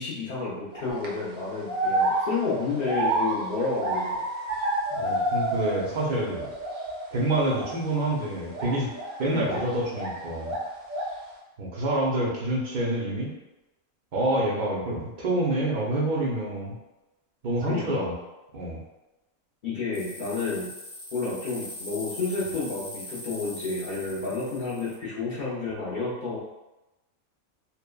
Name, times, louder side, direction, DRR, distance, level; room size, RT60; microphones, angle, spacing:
voice 1, 0.0-4.3 9.3-9.7 17.7-18.0 19.6-20.7 21.1-26.4, left 4 dB, 55° left, -8 dB, 0.5 m, -30 dB
sound 1, 0.7-1.1 1.7-6.0 6.3-7.1 7.5-7.8 8.5-10.2 10.4-11.2, right 2 dB, 80° right, 1.0 m, -29 dB
voice 2, 4.9-6.5 7.1-8.9 9.2-10.5 11.6-13.3 14.1-16.7 17.4-18.1 18.5-18.8, right 1 dB, 60° right, -4 dB, 0.5 m, -27 dB
sound 2, 19.9-25.0, left 1 dB, 20° left, 0.7 m, -41 dB
3.0 x 2.0 x 2.2 m, 1.0 s
omnidirectional pair, 1.4 m